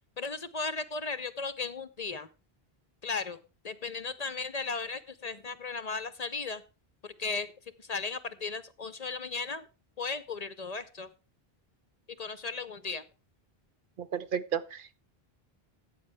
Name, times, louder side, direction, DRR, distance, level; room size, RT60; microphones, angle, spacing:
voice 1, 0.2-2.3 3.0-3.4 3.6-6.6 7.0-7.5 7.8-9.6 10.0-11.1 12.2-13.0, left 4 dB, 45° left, 0.7 m, -36 dB
voice 2, 14.0-14.9, right 8 dB, 60° right, 0.8 m, -33 dB
14.0 x 8.8 x 3.4 m
omnidirectional pair, 1.0 m